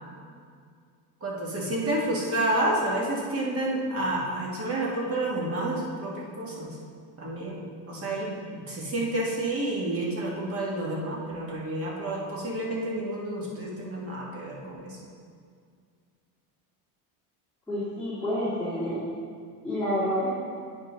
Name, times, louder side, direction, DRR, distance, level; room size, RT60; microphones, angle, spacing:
voice 1, 1.2-6.8 7.2-15.0, right 1 dB, 30° right, -3 dB, 1.6 m, -30 dB
voice 2, 17.7-19.0 19.6-20.3, equal, 5° left, -14 dB, 2.1 m, -28 dB
8.9 x 5.4 x 3.9 m, 2.1 s
cardioid pair, 145°, 43 cm